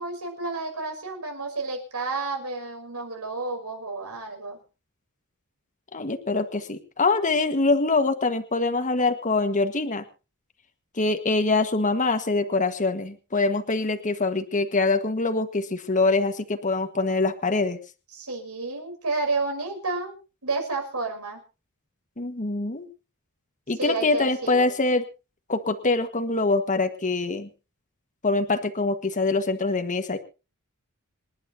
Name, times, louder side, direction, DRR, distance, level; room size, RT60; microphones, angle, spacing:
voice 1, 0.0-4.6 18.1-20.1 20.4-21.4 23.8-24.7, right 3 dB, 80° right, 3 dB, 6.2 m, -31 dB
voice 2, 5.9-10.0 10.9-17.8 22.2-22.9 23.7-25.0 25.5-27.5 28.2-30.2, left 3 dB, 35° left, 7 dB, 1.5 m, -24 dB
27.0 x 11.5 x 2.8 m, 0.32 s
head